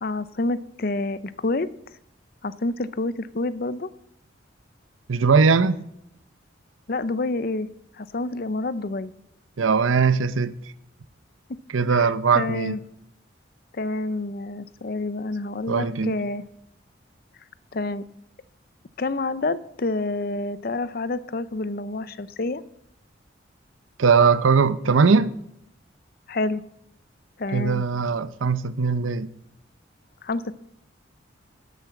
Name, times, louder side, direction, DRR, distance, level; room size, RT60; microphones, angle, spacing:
voice 1, 0.0-1.7 2.4-3.9 6.9-7.7 8.0-9.1 11.5-11.6 11.9-12.8 13.7-16.4 17.7-18.0 19.0-22.6 26.3-26.6 27.4-27.8 30.2-30.5, left 2 dB, 50° left, 0.6 m, -28 dB
voice 2, 5.1-5.8 9.6-10.6 11.7-12.8 15.7-16.1 24.0-25.3 27.5-29.3, right 5 dB, 90° right, 0.7 m, -20 dB
12.5 x 8.4 x 7.1 m
head